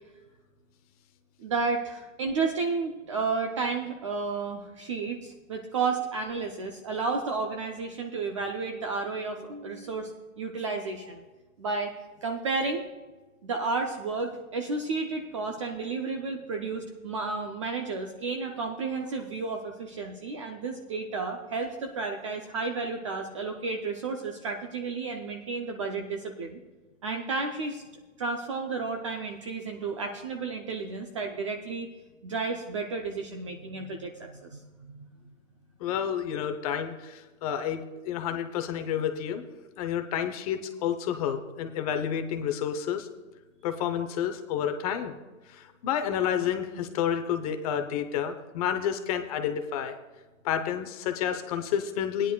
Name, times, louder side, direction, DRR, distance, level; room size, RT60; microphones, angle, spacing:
voice 1, 1.4-11.2 11.6-11.9 12.2-12.8 13.4-26.6 27.0-27.8 28.2-31.9 32.2-35.1, right 4 dB, 25° right, 4 dB, 0.4 m, -32 dB
voice 2, 35.8-39.4 39.8-43.1 43.6-45.2 45.5-50.0 50.4-52.3, left 9 dB, 30° left, 7 dB, 0.6 m, -30 dB
18.0 x 10.0 x 2.2 m, 1.2 s
hypercardioid pair, 150°, 40 cm